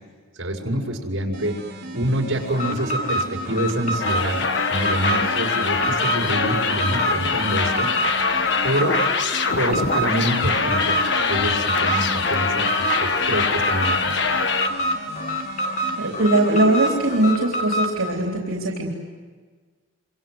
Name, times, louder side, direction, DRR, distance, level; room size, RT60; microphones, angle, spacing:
voice 1, 0.3-1.6 1.9-7.9 8.6-9.0 9.6-11.0 11.3-12.7 13.0-14.4 14.7-14.8, right 1 dB, 75° right, 1 dB, 5.8 m, -26 dB
sound 1, 1.3-17.3, right 1 dB, 45° right, 4.5 m, -37 dB
Alarm, 2.5-18.0, equal, 35° left, 2.5 m, -27 dB
sound 2, 4.0-14.7, left 4 dB, 60° left, 1.6 m, -23 dB
voice 2, 15.9-18.9, right 2 dB, 90° right, -1 dB, 3.8 m, -20 dB
28.0 x 26.5 x 8.1 m, 1.5 s
head